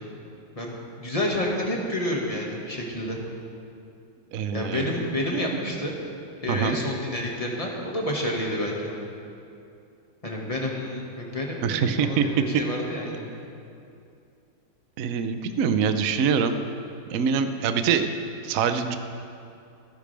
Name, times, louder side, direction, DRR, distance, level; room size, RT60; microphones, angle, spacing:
voice 1, 0.5-3.2 4.5-5.9 6.4-8.9 10.2-13.3, left 1 dB, 15° left, -2 dB, 1.7 m, -29 dB
voice 2, 4.3-5.0 5.3-5.8 6.5-6.8 11.6-12.3 15.0-16.5 17.1-18.1 18.4-19.0, right 6 dB, 75° right, 8 dB, 0.7 m, -25 dB
26.5 x 10.0 x 3.4 m, 2.6 s
omnidirectional pair, 2.4 m